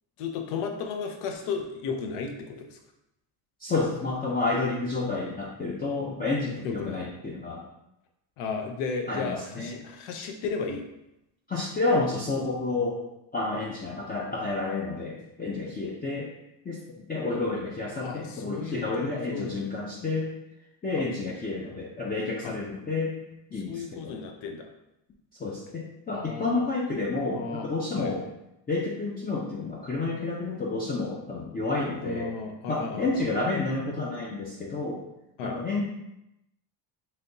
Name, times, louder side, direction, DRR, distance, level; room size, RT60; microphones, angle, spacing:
voice 1, 0.2-2.8 6.6-7.0 8.4-10.8 17.3-17.4 18.0-19.6 22.4-22.5 23.5-24.7 26.1-26.7 27.2-27.7 28.0-28.1 32.0-33.3 35.4-35.6, left 5 dB, 80° left, 4 dB, 0.7 m, -34 dB
voice 2, 3.6-7.6 9.1-9.8 11.5-13.0 13.3-16.3 16.6-16.8 17.1-20.3 20.8-23.1 23.5-24.2 25.4-28.3 28.7-32.3 32.7-35.1 35.4-35.8, left 3 dB, 20° left, -4 dB, 0.4 m, -30 dB
3.3 x 2.8 x 2.6 m, 0.86 s
supercardioid pair, 80°, 49 cm